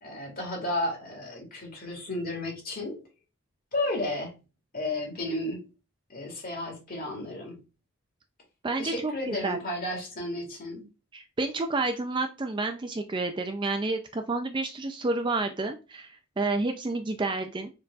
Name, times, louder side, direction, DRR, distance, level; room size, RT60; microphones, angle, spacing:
voice 1, 0.0-3.0 3.7-4.4 4.7-5.6 6.1-7.6 8.8-10.9, left 1 dB, 45° left, 1.8 m, -33 dB
voice 2, 8.6-9.6 11.1-17.7, right 3 dB, 20° right, 0.4 m, -30 dB
4.5 x 4.0 x 2.4 m
head